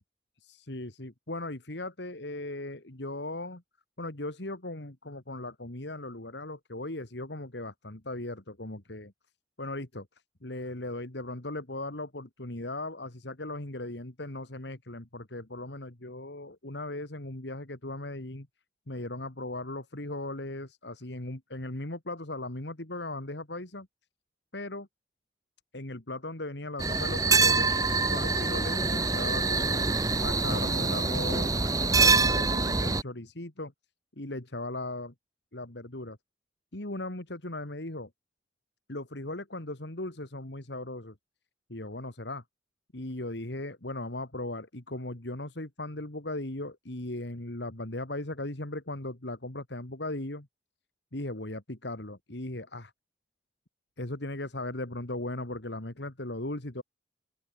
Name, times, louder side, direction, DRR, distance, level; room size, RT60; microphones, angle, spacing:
voice 1, 0.7-3.6 4.0-9.1 9.6-10.1 10.4-18.5 18.9-23.9 24.5-24.9 25.7-27.8 28.1-29.9 30.2-33.7 34.2-35.1 35.5-36.2 36.7-38.1 38.9-41.2 41.7-42.4 42.9-50.5 51.1-52.9 54.0-56.8, left 2 dB, 65° left, 2.4 m, -38 dB
sound 1, 26.8-33.0, right 3 dB, 20° right, 0.9 m, -25 dB
open air
head